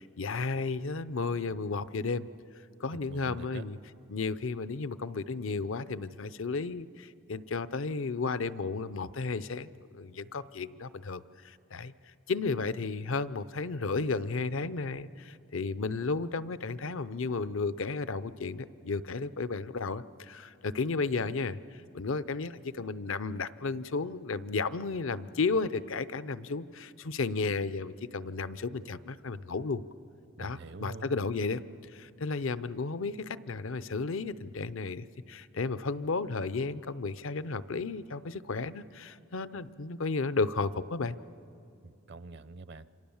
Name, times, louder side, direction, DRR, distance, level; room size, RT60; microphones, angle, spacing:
voice 1, 0.0-2.3 2.8-3.8 4.1-11.9 12.3-29.8 30.4-31.6 31.9-41.2, left 4 dB, 75° left, 15 dB, 0.7 m, -33 dB
voice 2, 3.1-3.6 30.4-31.1 41.8-42.8, right 3 dB, 55° right, 14 dB, 0.6 m, -45 dB
28.0 x 26.0 x 7.2 m, 2.5 s
head